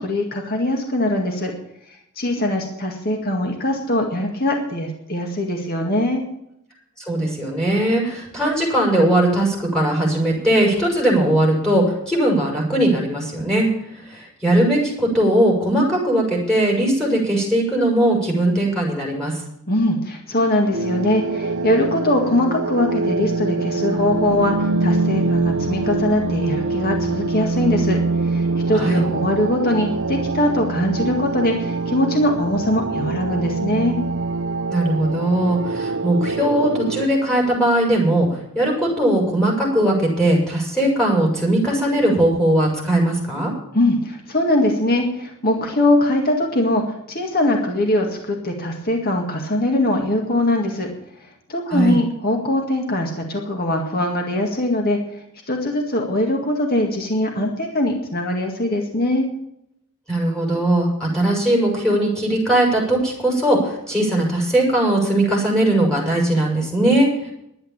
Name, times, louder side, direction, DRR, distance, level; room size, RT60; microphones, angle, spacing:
voice 1, 0.0-1.5 2.2-6.2 19.7-34.0 43.7-46.8 47.1-50.9 51.5-55.0 55.5-59.3, left 1 dB, 45° left, 2 dB, 2.0 m, -21 dB
voice 2, 7.0-19.4 28.7-29.0 34.7-43.5 51.7-52.0 60.1-67.3, right 1 dB, 5° left, -2 dB, 5.9 m, -19 dB
sound 1, 20.7-37.1, right 3 dB, 55° right, 0.9 m, -24 dB
12.0 x 8.9 x 8.9 m, 0.77 s
head